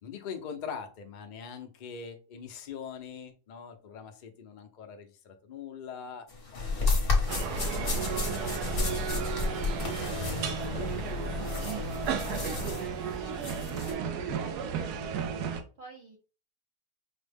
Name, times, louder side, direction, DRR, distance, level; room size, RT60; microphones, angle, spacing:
voice 1, 0.0-9.3 9.8-13.6, left 6 dB, 80° left, 5 dB, 0.4 m, -44 dB
sound 1, 6.3-13.9, left 3 dB, 40° left, 1.1 m, -32 dB
sound 2, 7.3-15.6, right 6 dB, 80° right, 1.2 m, -34 dB
voice 2, 14.4-14.9 15.8-16.2, right 3 dB, 60° right, 0 dB, 0.8 m, -49 dB
5.2 x 2.1 x 3.3 m, 0.36 s
omnidirectional pair, 1.7 m